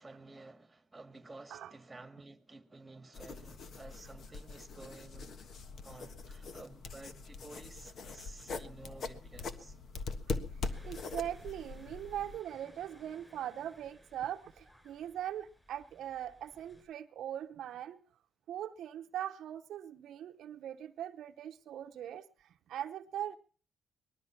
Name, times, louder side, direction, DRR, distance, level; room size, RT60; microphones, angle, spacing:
voice 1, 0.0-5.4 5.8-9.8, right 2 dB, 15° right, 1.9 m, -52 dB
sound 1, 3.1-12.4, left 4 dB, 60° left, 1.3 m, -42 dB
sound 2, 10.7-16.8, equal, 5° left, 6.9 m, -61 dB
voice 2, 10.8-18.0 18.5-23.4, right 11 dB, 75° right, 0.8 m, -41 dB
20.0 x 12.5 x 5.8 m
cardioid pair, 90°, 0 cm